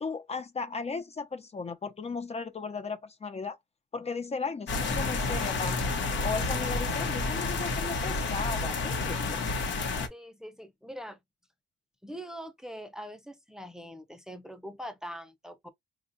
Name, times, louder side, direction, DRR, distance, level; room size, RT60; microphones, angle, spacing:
voice 1, 0.0-3.6 3.9-5.9 6.2-9.4, left 4 dB, 30° left, 0.7 m, -36 dB
sound 1, 4.7-10.1, left 3 dB, 70° left, 1.1 m, -30 dB
voice 2, 10.1-11.2 12.0-15.7, equal, 5° right, 0.8 m, -43 dB
4.2 x 2.5 x 2.7 m
cardioid pair, 90°, 20 cm